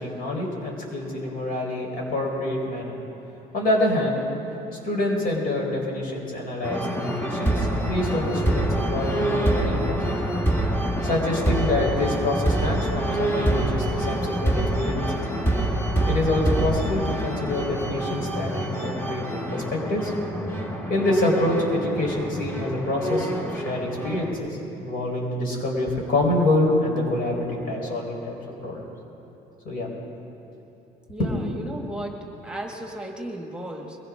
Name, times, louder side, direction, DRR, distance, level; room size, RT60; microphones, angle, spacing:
voice 1, 0.0-2.9 3.5-4.2 4.8-10.1 11.0-15.0 16.1-19.2 19.5-20.1 20.9-24.5 24.8-28.4 28.6-28.9 29.6-29.9 31.2-31.3, left 1 dB, 60° left, -1 dB, 4.1 m, -26 dB
sound 1, 6.6-24.3, right 1 dB, 15° left, 1.6 m, -26 dB
voice 2, 31.1-34.0, right 1 dB, 5° right, 1 dB, 1.6 m, -35 dB
22.5 x 16.0 x 3.6 m, 3.0 s
cardioid pair, 110°, 17 cm